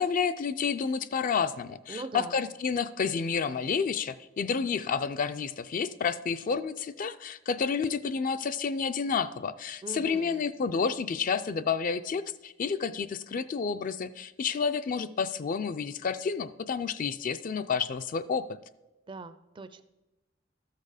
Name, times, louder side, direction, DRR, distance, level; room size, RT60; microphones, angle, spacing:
voice 1, 0.0-18.5, left 5 dB, 45° left, 12 dB, 0.3 m, -30 dB
voice 2, 1.9-2.4 9.8-10.4 19.1-19.8, right 3 dB, 25° right, 12 dB, 0.4 m, -41 dB
13.0 x 6.6 x 4.9 m, 1.0 s
head